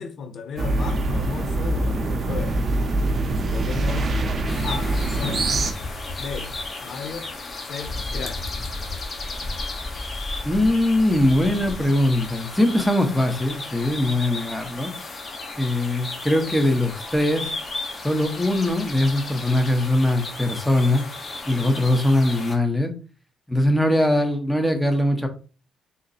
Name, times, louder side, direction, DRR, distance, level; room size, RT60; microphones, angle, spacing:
voice 1, 0.0-2.6 3.5-4.1 4.6-5.5 6.2-6.5 6.8-7.3 7.7-8.4, left 5 dB, 60° left, 0.7 m, -34 dB
sound 1, 0.6-5.7, right 2 dB, 45° right, 0.7 m, -24 dB
sound 2, 4.5-22.6, left 2 dB, 35° left, 1.2 m, -34 dB
voice 2, 10.4-14.9 15.5-17.5 18.0-21.0 21.5-22.9 23.5-25.3, left 1 dB, 5° left, 0.8 m, -21 dB
3.8 x 2.1 x 4.0 m
cardioid pair, 90°, 0 cm